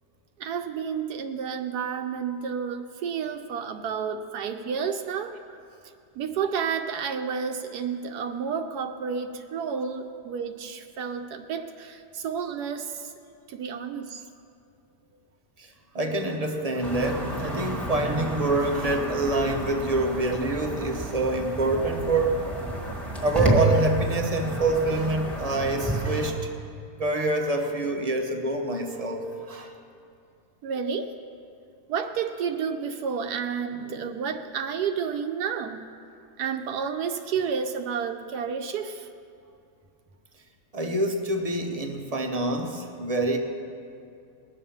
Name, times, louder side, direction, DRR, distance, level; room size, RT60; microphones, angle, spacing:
voice 1, 0.4-5.6 6.2-13.1 13.5-14.2 30.6-31.1 31.9-35.8 36.4-39.1, right 6 dB, 75° right, 6 dB, 1.1 m, -31 dB
voice 2, 15.6-22.4 22.8-26.5 27.0-29.7 40.7-43.4, right 2 dB, 30° right, 4 dB, 0.7 m, -26 dB
sound 1, 16.8-26.3, right 2 dB, ahead, 1.4 m, -30 dB
20.0 x 7.3 x 5.7 m, 2.5 s
omnidirectional pair, 1.8 m